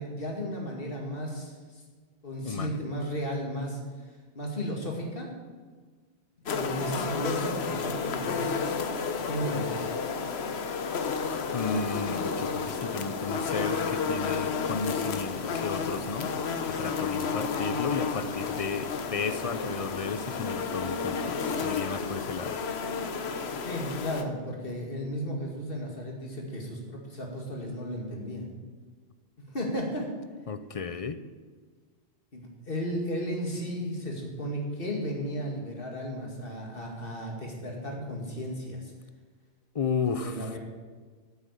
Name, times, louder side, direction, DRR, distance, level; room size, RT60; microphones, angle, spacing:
voice 1, 0.0-1.8 2.2-3.8 4.3-5.3 6.5-9.9 23.6-28.5 29.4-30.1 32.3-38.9 40.1-40.6, equal, 55° left, 0 dB, 2.4 m, -34 dB
voice 2, 2.4-2.8 11.5-16.3 16.6-22.6 30.5-31.2 39.7-40.5, left 5 dB, 40° left, 12 dB, 0.6 m, -33 dB
sound 1, 6.5-24.2, left 5 dB, 75° left, 1.1 m, -31 dB
8.9 x 8.4 x 8.2 m, 1.5 s
omnidirectional pair, 1.1 m